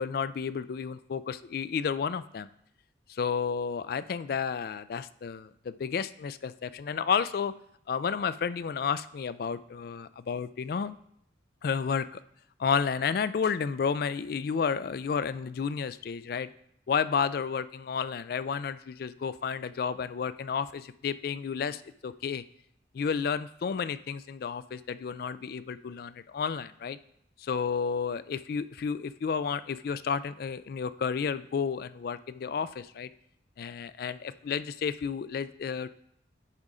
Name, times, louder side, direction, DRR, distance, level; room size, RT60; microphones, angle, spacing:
voice 1, 0.0-2.5 3.1-7.5 7.9-11.0 11.6-12.2 12.6-16.5 16.9-22.4 22.9-27.0 27.4-33.1 33.6-35.9, left 6 dB, 55° left, 15 dB, 0.3 m, -31 dB
10.5 x 3.7 x 4.9 m, 0.72 s
head